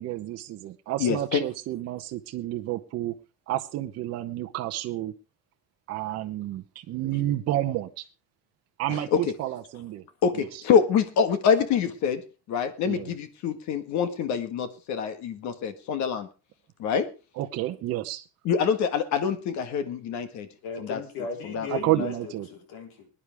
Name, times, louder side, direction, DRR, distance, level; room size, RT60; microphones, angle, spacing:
voice 1, 0.0-3.1 3.5-5.1 5.9-7.9 8.8-10.0 10.4-10.5 12.9-13.1 17.4-18.2 21.7-22.5, right 14 dB, 40° right, 0.9 m, -30 dB
voice 2, 1.0-1.4 8.9-9.3 10.2-12.2 12.5-16.3 16.8-17.1 18.4-20.5 20.8-21.0 21.5-21.7 21.9-22.0, left 7 dB, 50° left, 1.6 m, -25 dB
voice 3, 20.6-23.1, left 5 dB, 70° left, 4.0 m, -36 dB
22.0 x 10.0 x 3.5 m
cardioid pair, 175°, 37 cm